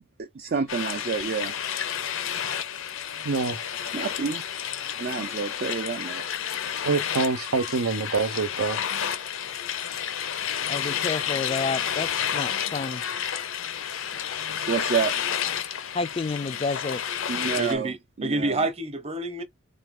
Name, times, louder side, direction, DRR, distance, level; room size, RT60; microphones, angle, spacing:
voice 1, 0.2-1.5 3.9-4.4 5.0-6.4 14.7-15.1 17.3-18.7, right 5 dB, 45° right, 0.4 m, -29 dB
sound 1, 0.7-17.8, left 9 dB, 70° left, 0.6 m, -30 dB
voice 2, 3.2-3.6 6.8-8.8, right 4 dB, 85° right, 0.6 m, -25 dB
voice 3, 10.7-13.0 15.9-17.0, left 4 dB, 25° left, 0.3 m, -30 dB
voice 4, 17.6-19.4, right 2 dB, 30° right, 0.8 m, -28 dB
3.8 x 2.4 x 3.5 m
head